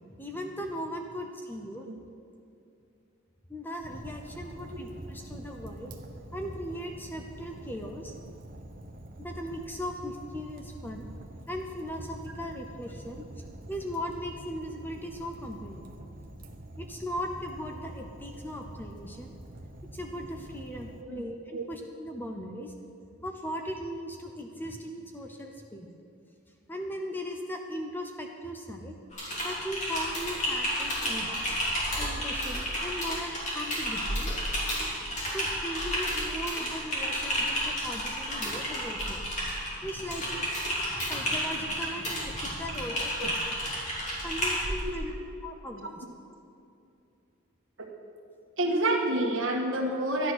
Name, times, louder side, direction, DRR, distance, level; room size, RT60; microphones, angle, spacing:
voice 1, 0.1-1.9 3.5-5.9 6.3-8.1 9.2-11.1 11.5-13.2 13.7-15.9 16.8-19.3 19.9-22.7 23.2-25.9 26.7-29.0 29.4-31.5 32.0-34.3 35.3-39.2 39.5-40.5 40.8-43.8 44.2-45.1 45.4-46.0, equal, 10° left, 3 dB, 0.7 m, -38 dB
Fire, 3.8-21.0, right 1 dB, 40° right, 0.9 m, -45 dB
Typing, 29.1-44.8, equal, 35° left, 3.1 m, -31 dB
voice 2, 44.8-45.2 45.8-45.9 47.8-47.9 48.6-50.3, right 1 dB, 60° right, -2 dB, 1.9 m, -29 dB
12.0 x 10.0 x 6.2 m, 2.5 s
head